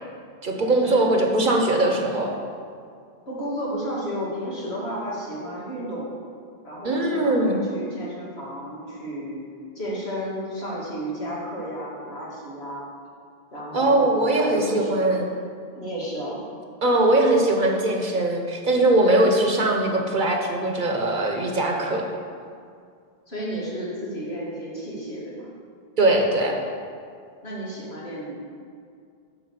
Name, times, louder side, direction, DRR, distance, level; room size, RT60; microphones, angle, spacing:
voice 1, 0.4-2.4 6.8-7.6 13.7-15.3 16.8-22.0 26.0-26.5, right 1 dB, 50° right, 2 dB, 1.1 m, -21 dB
voice 2, 3.3-6.1 6.6-9.4 9.7-12.9 13.5-15.0 15.8-16.4 23.3-25.5 27.4-28.4, equal, 90° left, -7 dB, 2.6 m, -32 dB
9.5 x 4.4 x 7.1 m, 2.3 s
omnidirectional pair, 1.0 m